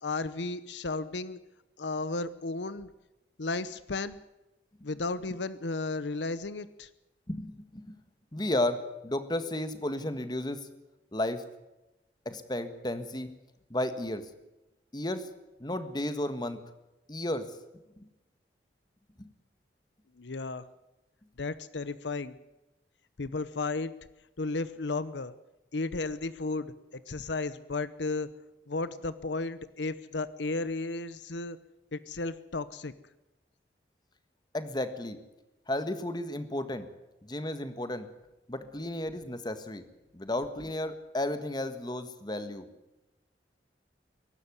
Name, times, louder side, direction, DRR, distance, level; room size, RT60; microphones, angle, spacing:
voice 1, 0.0-1.4 1.8-2.9 3.4-4.2 4.8-6.9 20.2-20.6 21.4-22.4 23.2-23.9 24.4-25.3 25.7-28.3 28.7-31.6 31.9-32.9, left 3 dB, 85° left, 15 dB, 0.9 m, -34 dB
voice 2, 7.3-7.9 8.3-10.7 11.1-11.4 12.2-13.3 13.7-14.2 14.9-15.3 15.6-16.6 17.1-17.5 18.0-18.1 19.2-19.3 34.5-35.2 35.7-36.9 37.2-38.1 38.5-39.8 40.1-42.6, left 1 dB, 25° left, 10 dB, 1.6 m, -33 dB
22.5 x 12.0 x 9.6 m, 0.99 s
head